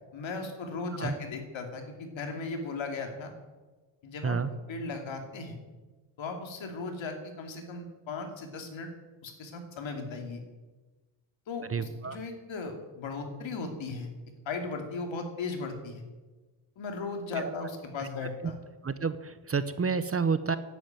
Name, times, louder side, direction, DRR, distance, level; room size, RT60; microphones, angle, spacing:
voice 1, 0.1-3.3 4.0-4.4 4.7-5.6 6.2-8.9 9.2-10.4 11.5-14.1 14.5-16.0 16.8-18.6, left 3 dB, 65° left, 4 dB, 2.8 m, -37 dB
voice 2, 11.7-12.2 17.4-17.5 18.8-20.6, right 5 dB, 30° right, 13 dB, 0.8 m, -29 dB
11.0 x 8.8 x 9.0 m, 1.2 s
cardioid pair, 85°, 49 cm